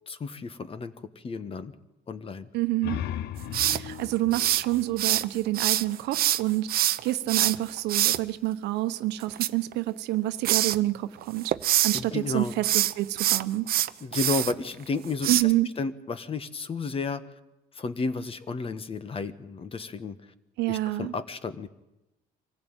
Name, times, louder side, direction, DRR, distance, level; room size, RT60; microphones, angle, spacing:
voice 1, 0.1-0.9 1.2-1.7 2.1-2.5 11.9-12.5 14.0-15.4 15.8-17.2 17.8-20.2 20.7-21.7, left 4 dB, 35° left, 12 dB, 1.4 m, -32 dB
sound 1, 2.5-6.0, left 10 dB, 75° left, 0.9 m, -37 dB
voice 2, 2.5-3.0 3.5-11.5 11.8-13.7 15.3-15.7 20.6-21.1, right 16 dB, 85° right, 11 dB, 1.0 m, -28 dB
sound 2, 3.5-5.3 5.5-8.2 9.2-10.2 10.4-10.8 11.2-12.0 12.5-14.5 15.2-15.4, right 13 dB, 60° right, 0.8 m, -25 dB
25.0 x 15.5 x 9.0 m, 0.95 s
cardioid pair, 110°, 17 cm